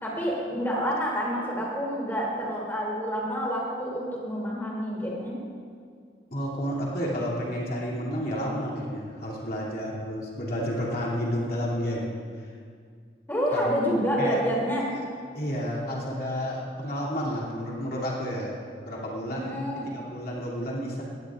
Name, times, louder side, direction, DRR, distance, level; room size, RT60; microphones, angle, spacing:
voice 1, 0.0-5.4 13.3-14.9 19.3-19.9, equal, 10° left, -4 dB, 2.7 m, -28 dB
voice 2, 6.3-12.5 13.5-13.7 14.2-14.4 15.3-21.0, equal, 50° left, -5 dB, 2.8 m, -31 dB
18.5 x 17.0 x 2.5 m, 2.1 s
head